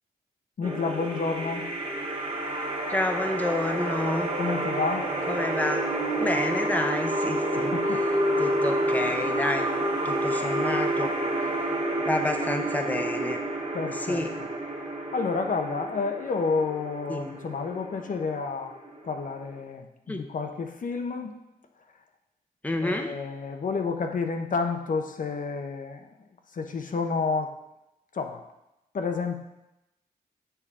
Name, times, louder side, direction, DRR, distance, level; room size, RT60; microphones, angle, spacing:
voice 1, 0.6-1.7 4.4-5.1 7.5-8.0 13.7-14.5 15.1-18.7 19.0-21.4 22.8-26.1 26.5-27.5 28.1-28.4 28.9-29.4, left 4 dB, 55° left, 5 dB, 0.7 m, -30 dB
sound 1, 0.6-19.6, right 1 dB, 35° right, 1.5 m, -29 dB
voice 2, 2.9-4.3 5.3-5.8 6.2-8.1 8.4-9.7 10.0-11.2 12.1-13.4 13.9-14.3 17.1-17.4 20.1-20.3 22.6-23.1, left 1 dB, 10° left, 5 dB, 0.7 m, -29 dB
6.9 x 5.5 x 3.7 m, 0.92 s
cardioid pair, 75°, 16 cm